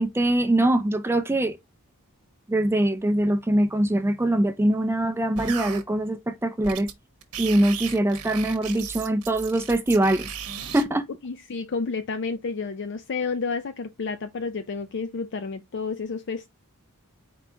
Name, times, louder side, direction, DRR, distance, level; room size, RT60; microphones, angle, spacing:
voice 1, 0.0-1.6 2.5-6.9 7.4-10.3 10.7-11.0, right 1 dB, 10° right, 0.4 m, -23 dB
sound 1, 5.4-5.8 6.6-6.9 7.2-10.8, right 7 dB, 90° right, 1.1 m, -35 dB
voice 2, 11.2-16.5, left 4 dB, 55° left, 0.5 m, -30 dB
4.6 x 4.3 x 2.7 m
head